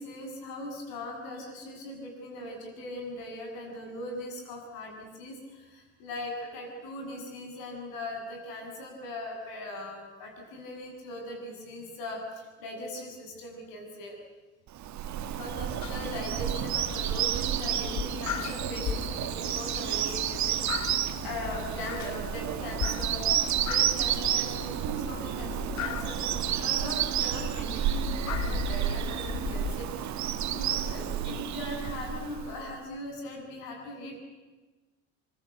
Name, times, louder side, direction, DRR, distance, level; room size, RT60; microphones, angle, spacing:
voice 1, 0.0-14.2 15.2-20.9 21.2-34.2, left 1 dB, 60° left, 2 dB, 8.0 m, -40 dB
Bird vocalization bird call bird song, 14.8-32.8, right 10 dB, 45° right, 1.8 m, -31 dB
sound 1, 15.8-29.7, left 9 dB, 45° left, 1.6 m, -38 dB
24.5 x 23.5 x 8.2 m, 1.3 s
hypercardioid pair, 65°, 39 cm